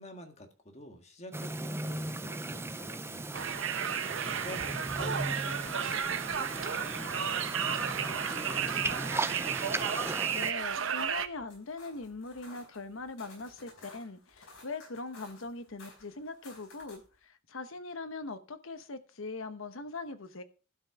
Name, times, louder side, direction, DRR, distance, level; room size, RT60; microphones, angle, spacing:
voice 1, 0.0-9.5, left 1 dB, 30° left, 1.6 m, -49 dB
sound 1, 1.3-10.5, right 2 dB, 10° right, 0.5 m, -37 dB
Conversation, 3.3-11.3, right 7 dB, 70° right, 0.8 m, -33 dB
voice 2, 10.3-20.4, left 3 dB, 75° left, 1.0 m, -41 dB
sound 2, 10.7-17.1, left 3 dB, 55° left, 4.9 m, -55 dB
12.0 x 5.6 x 5.8 m
head